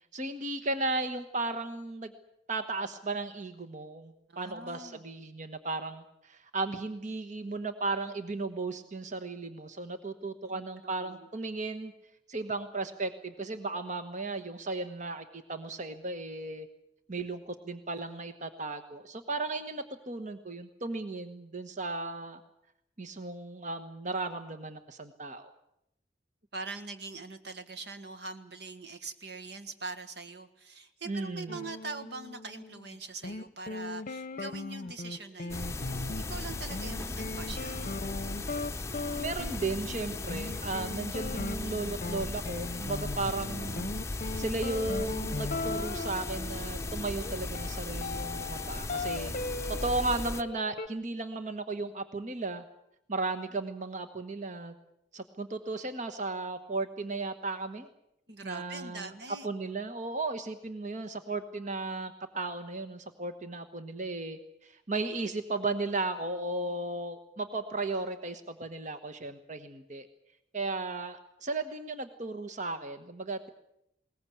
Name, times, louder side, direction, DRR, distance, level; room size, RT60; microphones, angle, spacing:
voice 1, 0.1-2.1 2.5-11.9 12.3-16.7 17.1-22.4 23.0-25.5 31.1-31.6 39.2-43.9 44.3-49.3 49.7-52.6 53.1-54.7 55.1-57.9 58.4-59.1 59.4-70.1 70.5-73.5, right 3 dB, 45° right, 9 dB, 1.2 m, -35 dB
voice 2, 4.3-5.0 10.4-10.6 11.0-11.3 26.5-37.9 58.3-59.5, right 3 dB, 65° right, 8 dB, 1.6 m, -43 dB
sound 1, 31.5-33.0 33.2-50.9, left 3 dB, 45° left, 0.8 m, -39 dB
sound 2, 35.5-50.4, left 2 dB, 15° left, 0.8 m, -37 dB
21.0 x 19.0 x 8.6 m, 0.80 s
head